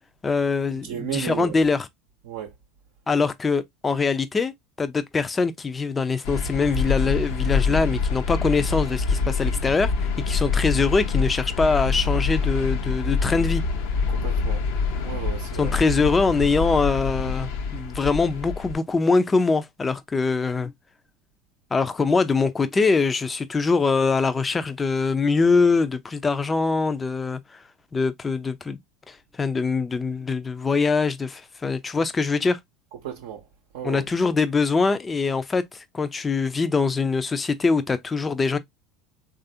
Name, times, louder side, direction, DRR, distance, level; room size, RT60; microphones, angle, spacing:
voice 1, 0.2-1.9 3.1-13.6 15.6-20.7 21.7-27.6 27.9-28.8 29.1-32.6 33.8-38.6, left 4 dB, 20° left, 0.4 m, -23 dB
voice 2, 0.8-1.5 2.3-2.5 14.1-14.6 15.0-15.7 33.0-33.4 33.7-34.0, right 9 dB, 70° right, 0.6 m, -33 dB
sound 1, 6.2-18.7, left 4 dB, 70° left, 0.7 m, -25 dB
3.2 x 2.4 x 2.6 m
hypercardioid pair, 80°, 0 cm